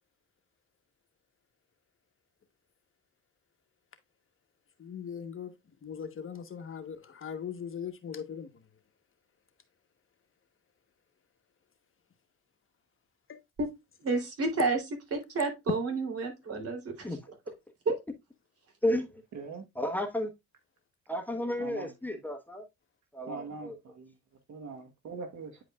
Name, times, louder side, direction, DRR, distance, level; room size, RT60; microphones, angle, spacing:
voice 1, 4.8-5.5 5.8-8.7 13.3-13.4, left 7 dB, 45° left, 1.2 m, -40 dB
voice 2, 14.0-14.8 15.1-17.1 17.8-18.0, right 3 dB, 50° right, 3.3 m, -30 dB
voice 3, 18.8-19.2 19.8-20.3 21.1-22.6 23.1-23.7, left 1 dB, 5° left, 1.2 m, -32 dB
voice 4, 19.3-19.7 21.6-22.2 23.3-24.1 24.5-25.6, right 4 dB, 70° right, 1.4 m, -42 dB
9.5 x 5.0 x 2.4 m
cardioid pair, 90°, 30 cm